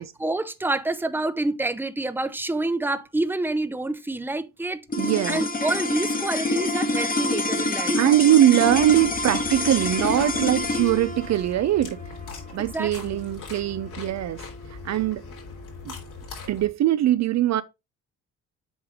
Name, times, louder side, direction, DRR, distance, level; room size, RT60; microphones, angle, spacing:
voice 1, 0.0-8.0 12.6-13.2, right 2 dB, 5° right, 0.8 m, -28 dB
sound 1, 4.9-15.4, left 2 dB, 25° left, 1.3 m, -28 dB
voice 2, 5.0-5.4 8.0-12.0 12.5-14.4 14.8-15.2 15.8-15.9 16.5-17.6, right 12 dB, 55° right, 0.5 m, -21 dB
sound 2, 8.6-16.7, left 5 dB, 65° left, 4.0 m, -40 dB
8.0 x 4.7 x 3.6 m
supercardioid pair, 75°, 33 cm